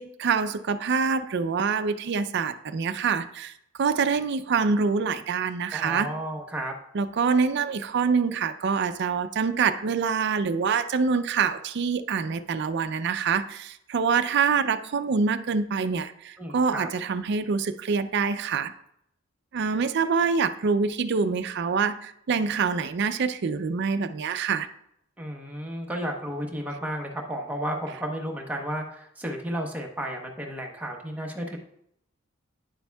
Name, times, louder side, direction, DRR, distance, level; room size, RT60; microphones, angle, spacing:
voice 1, 0.0-3.5 3.8-6.1 6.9-18.7 19.5-24.7, right 5 dB, 55° right, 11 dB, 0.4 m, -25 dB
voice 2, 5.7-6.7 16.4-16.9 25.2-31.6, equal, 10° right, 0 dB, 0.9 m, -33 dB
9.3 x 6.9 x 2.3 m, 0.73 s
head